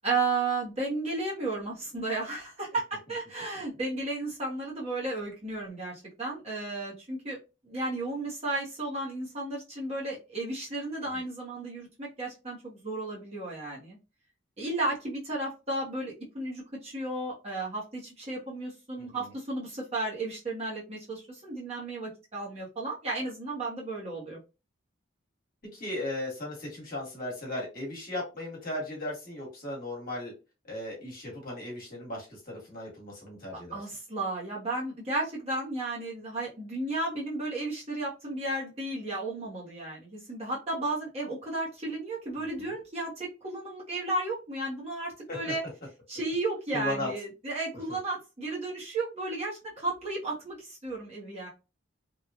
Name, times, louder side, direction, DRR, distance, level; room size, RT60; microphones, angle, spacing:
voice 1, 0.0-7.4 7.6-14.0 14.6-24.4 33.7-45.6 46.1-51.5, right 2 dB, 30° right, 0.9 m, -33 dB
voice 2, 19.0-19.3 25.7-30.3 30.7-33.8 42.4-42.7 45.3-45.5 46.7-47.1 47.9-48.0, left 1 dB, 45° left, 1.3 m, -36 dB
3.0 x 2.3 x 2.4 m
head